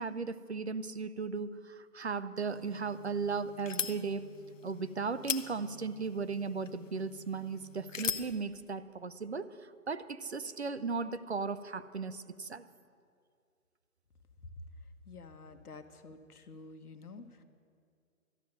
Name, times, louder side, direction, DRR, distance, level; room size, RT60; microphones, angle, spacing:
voice 1, 0.0-4.3 4.6-12.6, right 4 dB, 50° right, 13 dB, 0.5 m, -36 dB
sound 1, 2.5-8.4, left 7 dB, 60° left, 0.7 m, -41 dB
voice 2, 15.0-17.4, left 3 dB, 75° left, 8 dB, 1.3 m, -49 dB
12.5 x 6.6 x 9.7 m, 2.2 s
hypercardioid pair, 170°, 45 cm